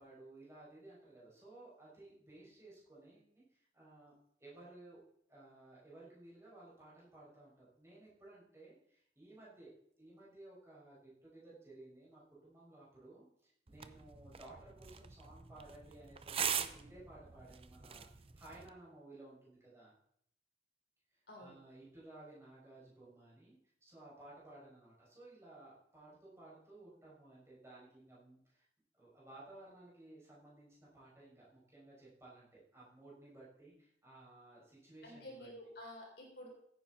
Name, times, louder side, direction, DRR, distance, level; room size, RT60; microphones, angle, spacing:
voice 1, 0.0-4.1 4.4-5.0 5.3-9.7 10.0-18.1 18.3-19.9 21.1-28.7 28.9-35.5, right 2 dB, 15° right, -7 dB, 6.3 m, -57 dB
sound 1, 13.7-18.7, right 8 dB, 30° right, 0.6 m, -42 dB
voice 2, 21.3-21.6 35.0-36.5, left 1 dB, 60° left, 0 dB, 3.7 m, -50 dB
15.5 x 9.4 x 4.2 m, 0.70 s
head